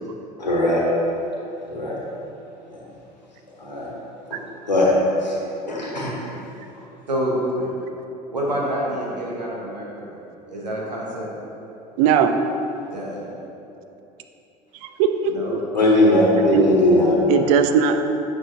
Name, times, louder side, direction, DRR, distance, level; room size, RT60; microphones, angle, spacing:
voice 1, 0.4-0.8 1.7-1.9 2.7-2.8 3.6-3.9 4.7-4.9 5.2-5.4 5.7-6.1 15.7-17.5, left 1 dB, 85° left, -4 dB, 1.3 m, -19 dB
voice 2, 7.1-7.7 8.3-10.1 10.5-11.3 12.9-13.2 15.3-15.6, equal, 80° right, -4 dB, 1.3 m, -27 dB
voice 3, 12.0-12.3 14.8-15.3 16.5-16.6 17.3-18.1, right 7 dB, 55° right, 7 dB, 0.5 m, -19 dB
9.0 x 6.0 x 2.8 m, 2.9 s
figure-of-eight pair, 70°, 21 cm